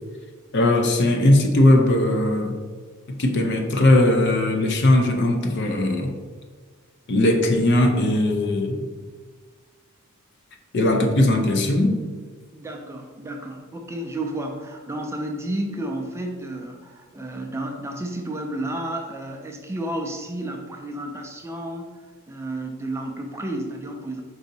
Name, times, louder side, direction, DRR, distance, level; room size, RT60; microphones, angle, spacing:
voice 1, 0.5-2.6 3.1-6.2 7.1-8.8 10.7-12.0, left 1 dB, 55° left, 4 dB, 0.6 m, -19 dB
voice 2, 12.5-24.2, right 1 dB, 10° right, 2 dB, 0.3 m, -32 dB
4.7 x 2.7 x 4.0 m, 1.5 s
head